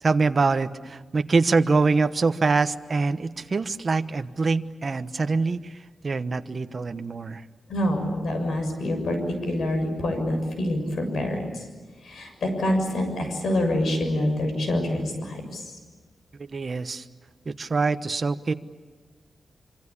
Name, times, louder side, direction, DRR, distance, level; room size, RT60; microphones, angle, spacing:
voice 1, 0.0-7.4 16.4-17.1 17.5-18.5, right 4 dB, 40° right, 10 dB, 1.0 m, -24 dB
voice 2, 7.7-11.6 12.0-15.7, left 1 dB, 80° left, 5 dB, 6.9 m, -26 dB
26.0 x 25.5 x 8.6 m, 1.3 s
wide cardioid pair, 130°, 0 cm